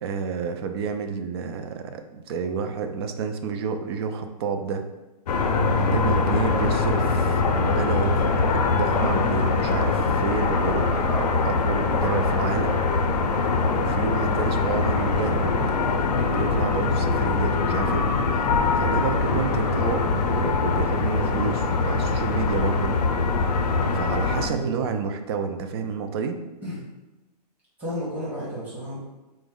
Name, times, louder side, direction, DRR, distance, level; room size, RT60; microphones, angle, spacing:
voice 1, 0.0-4.8 5.7-8.4 8.7-12.8 13.7-15.5 16.1-18.0 18.3-18.5 18.8-20.0 20.3-23.0 23.8-26.4, right 6 dB, 40° right, 7 dB, 0.4 m, -30 dB
sound 1, 5.3-24.5, left 4 dB, 75° left, 0.5 m, -23 dB
voice 2, 6.4-6.7 8.2-8.3 24.5-25.0 26.6-26.8 27.8-29.0, equal, 10° right, -10 dB, 1.2 m, -32 dB
4.3 x 2.1 x 3.6 m, 1.1 s
hypercardioid pair, 150°, 21 cm